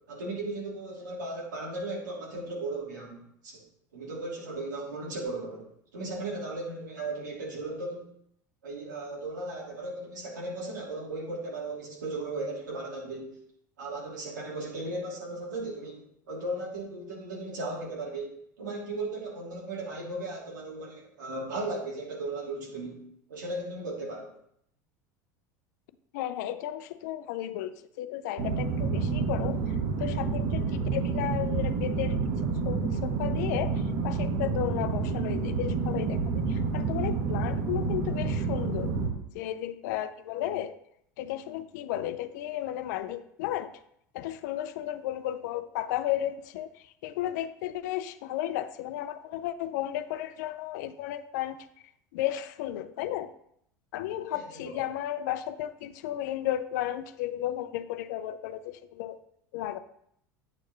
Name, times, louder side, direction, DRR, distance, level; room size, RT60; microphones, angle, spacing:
voice 1, 0.1-3.6 3.9-5.7 5.9-8.1 8.6-13.4 13.8-23.0 23.3-24.3 54.3-54.8, right 2 dB, 90° right, -4 dB, 2.9 m, -36 dB
voice 2, 26.1-32.2 32.6-36.2 36.5-38.9 39.3-40.7 41.2-43.7 44.1-46.7 47.0-51.6 52.1-53.3 53.9-59.2 59.5-59.8, left 12 dB, 70° left, 12 dB, 0.6 m, -34 dB
sound 1, 28.4-39.1, right 4 dB, 60° right, 1.4 m, -29 dB
8.6 x 6.4 x 3.1 m, 0.71 s
hypercardioid pair, 85°, 10 cm